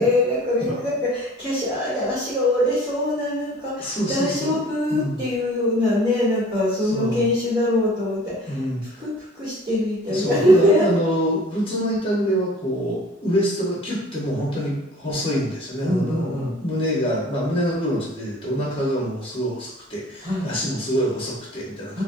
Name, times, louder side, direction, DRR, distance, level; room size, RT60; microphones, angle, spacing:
voice 1, 0.0-8.6 9.0-11.0 15.8-16.5 20.2-20.5 21.9-22.0, left 1 dB, 25° right, -13 dB, 1.3 m, -22 dB
voice 2, 3.8-4.6 4.9-5.2 6.8-7.3 8.5-9.0 10.1-22.0, equal, 30° left, -5 dB, 1.0 m, -26 dB
3.9 x 2.2 x 2.6 m, 0.86 s
head